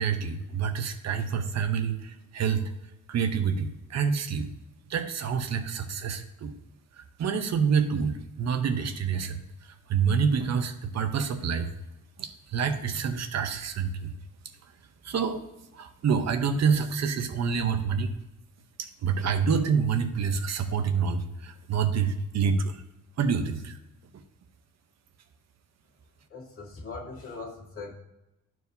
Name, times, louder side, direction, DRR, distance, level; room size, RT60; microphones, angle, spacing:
voice 1, 0.0-2.7 3.1-4.5 4.9-6.6 7.0-9.4 9.9-11.7 12.2-14.1 15.0-15.4 15.7-18.1 18.8-22.8 23.2-23.8, right 6 dB, 50° right, 8 dB, 0.8 m, -27 dB
voice 2, 26.3-28.0, left 3 dB, 40° left, -3 dB, 1.9 m, -40 dB
12.5 x 4.7 x 2.6 m, 0.95 s
cardioid pair, 155°, 33 cm